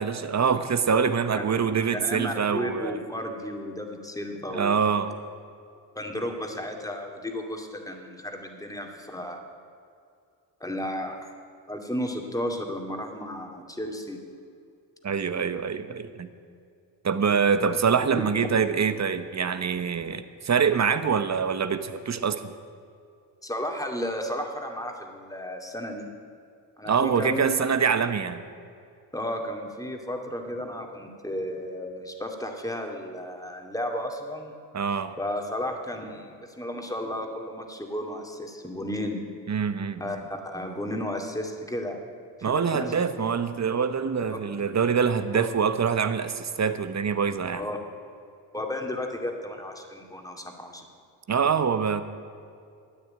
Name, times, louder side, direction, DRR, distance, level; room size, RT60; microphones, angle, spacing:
voice 1, 0.0-3.0 4.5-5.1 15.0-16.3 17.0-22.5 26.9-28.4 34.7-35.1 39.5-40.2 42.4-47.6 51.3-52.0, right 6 dB, 40° right, 11 dB, 1.1 m, -25 dB
voice 2, 1.9-4.8 5.9-9.4 10.6-11.3 11.7-14.2 18.4-18.5 23.4-26.1 26.8-27.6 29.1-34.5 35.2-39.3 40.0-42.0 42.4-42.9 44.3-44.4 45.3-45.5 47.5-47.8 48.5-50.8, left 1 dB, 10° left, 3 dB, 2.4 m, -33 dB
13.0 x 9.4 x 8.7 m, 2.4 s
cardioid pair, 65°, 44 cm